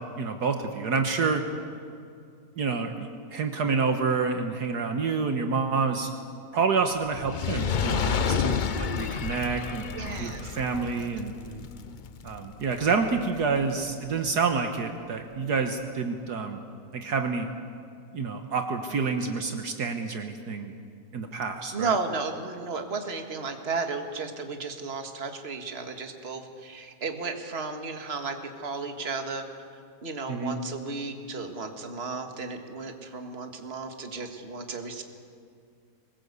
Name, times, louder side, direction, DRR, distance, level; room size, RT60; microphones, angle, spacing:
voice 1, 0.0-1.4 2.6-6.1 6.5-11.7 12.2-16.6 16.9-17.5 18.1-20.7 21.1-21.9 30.3-30.6, right 5 dB, 65° right, 5 dB, 1.7 m, -28 dB
Fire, 7.1-13.6 14.3-14.4, left 6 dB, 75° left, 0.4 m, -30 dB
voice 2, 9.9-10.6 11.0-11.2 21.7-35.0, right 4 dB, 35° right, 5 dB, 1.9 m, -34 dB
23.0 x 20.5 x 8.2 m, 2.4 s
omnidirectional pair, 1.9 m